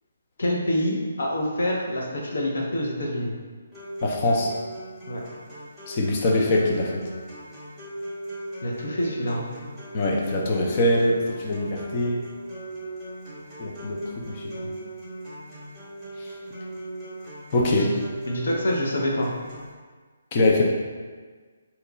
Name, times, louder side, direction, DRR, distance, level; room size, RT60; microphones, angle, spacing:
voice 1, 0.4-3.3 5.1-5.2 8.6-9.5 17.7-17.9 18.3-19.3, left 1 dB, 70° left, -2 dB, 0.7 m, -26 dB
sound 1, 3.7-19.7, right 1 dB, ahead, 0.7 m, -38 dB
voice 2, 4.0-4.5 5.9-7.0 9.9-12.2 13.6-14.7 16.2-16.3 17.5-17.9 20.3-20.6, left 1 dB, 30° left, -1 dB, 0.4 m, -23 dB
2.9 x 2.2 x 3.8 m, 1.5 s
hypercardioid pair, 170°, 0 cm